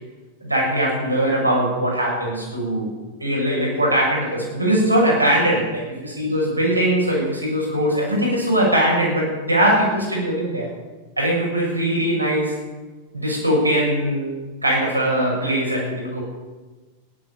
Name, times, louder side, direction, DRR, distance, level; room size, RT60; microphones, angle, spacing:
voice 1, 0.4-2.9 3.2-10.7 11.2-12.5 13.1-14.3 14.6-16.2, right 1 dB, 85° right, -3 dB, 7.0 m, -21 dB
16.0 x 12.0 x 7.3 m, 1.3 s
figure-of-eight pair, 90°, 0 cm